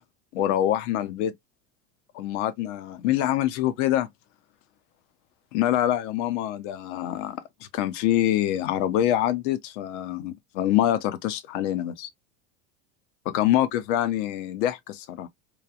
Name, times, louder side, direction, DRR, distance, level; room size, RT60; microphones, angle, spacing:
voice 1, 0.3-1.3 2.1-4.1 5.5-7.4 7.7-12.1 13.3-15.3, left 12 dB, 60° left, 0.7 m, -25 dB
3.1 x 2.3 x 2.4 m
hypercardioid pair, 85°, 41 cm